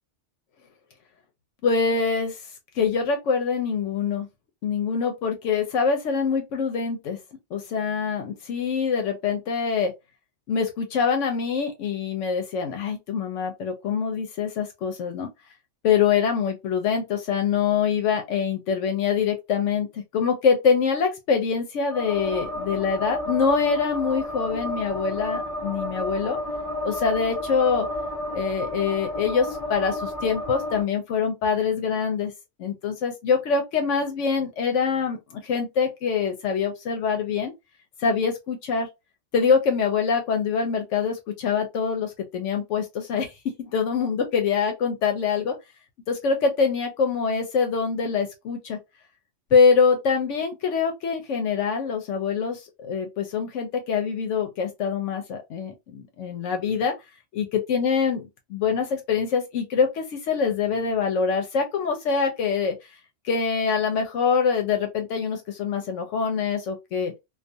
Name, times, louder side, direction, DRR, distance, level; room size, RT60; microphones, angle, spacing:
voice 1, 1.6-2.4 2.8-4.3 4.6-7.2 7.5-9.9 10.5-15.3 15.8-26.4 26.8-27.9 28.3-32.3 32.6-37.5 38.0-38.9 39.3-43.3 43.6-45.5 46.1-48.8 49.5-56.9 57.3-62.7 63.2-67.1, left 6 dB, 80° left, 0.9 m, -24 dB
sound 1, 21.9-30.8, left 1 dB, 25° left, 0.7 m, -31 dB
2.3 x 2.3 x 2.6 m
omnidirectional pair, 1.3 m